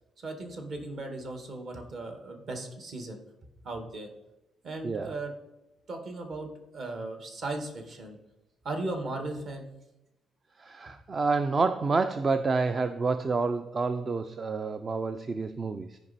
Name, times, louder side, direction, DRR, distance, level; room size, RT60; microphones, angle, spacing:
voice 1, 0.2-3.2 3.6-4.1 4.6-5.3 5.9-8.2 8.6-9.7, right 2 dB, 50° right, 5 dB, 1.6 m, -37 dB
voice 2, 4.8-5.1 10.6-16.0, right 4 dB, 30° right, 10 dB, 0.4 m, -28 dB
13.5 x 5.3 x 4.1 m, 0.93 s
cardioid pair, 145°, 0 cm